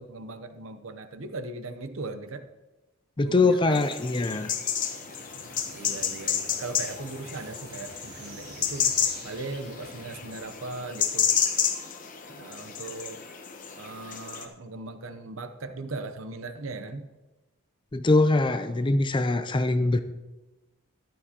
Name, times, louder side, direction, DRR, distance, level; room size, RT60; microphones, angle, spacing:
voice 1, 0.0-2.4 3.2-3.8 5.7-8.9 9.2-11.3 12.3-13.2 13.8-17.1 19.8-20.0, right 3 dB, 75° right, 10 dB, 0.8 m, -38 dB
voice 2, 3.2-4.5 17.9-20.0, left 2 dB, 25° left, 10 dB, 0.5 m, -23 dB
sound 1, 3.7-14.4, left 8 dB, 40° left, 1.0 m, -31 dB
sound 2, 4.8-11.7, right 2 dB, 50° right, 3.5 m, -49 dB
14.0 x 11.0 x 2.9 m, 1.1 s
head